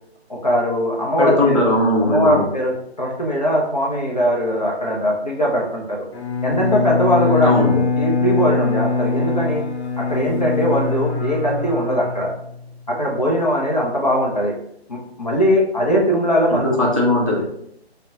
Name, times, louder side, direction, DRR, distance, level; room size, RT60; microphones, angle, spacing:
voice 1, 0.3-1.6 2.0-2.7 3.0-6.1 6.4-7.7 8.0-9.6 10.0-12.3 12.9-14.5 14.9-16.9, equal, 40° left, -2 dB, 0.5 m, -20 dB
voice 2, 1.2-2.4 7.4-7.8 16.5-17.4, left 1 dB, 35° right, -4 dB, 0.4 m, -18 dB
Bowed string instrument, 6.1-12.7, left 4 dB, 80° left, 0.7 m, -22 dB
2.6 x 2.1 x 2.3 m, 0.71 s
hypercardioid pair, 170°, 32 cm